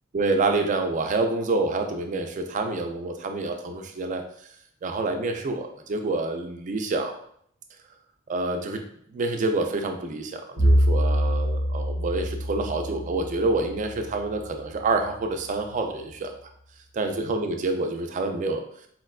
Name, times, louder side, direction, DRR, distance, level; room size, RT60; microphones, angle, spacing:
voice 1, 0.1-4.2 4.8-7.2 8.3-8.8 9.1-16.3 16.9-18.9, right 3 dB, 40° right, 5 dB, 0.3 m, -27 dB
Bowed string instrument, 10.6-14.8, equal, 90° left, 1.2 m, -25 dB
4.2 x 2.1 x 2.3 m, 0.66 s
head